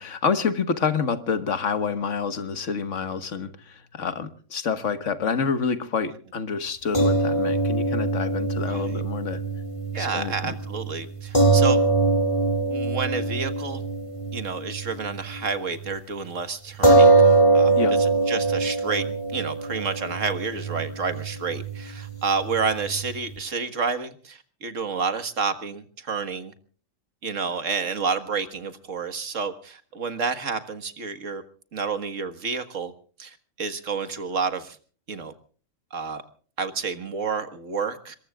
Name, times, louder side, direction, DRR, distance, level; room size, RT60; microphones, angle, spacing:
voice 1, 0.0-9.4 10.0-10.6 17.8-17.9, left 5 dB, 70° left, 11 dB, 1.8 m, -28 dB
sound 1, 6.9-15.5 15.8-15.9 16.8-23.4, right 3 dB, 25° left, 2.0 m, -23 dB
voice 2, 8.6-9.0 9.9-11.8 12.7-13.9 14.3-17.1 17.5-17.7 18.0-19.1 19.3-26.5 27.2-31.4 31.7-32.9 33.2-34.8 35.1-35.3 35.9-36.2 36.6-38.2, right 5 dB, 75° right, 10 dB, 2.0 m, -29 dB
26.5 x 22.0 x 2.4 m, 0.42 s
omnidirectional pair, 1.3 m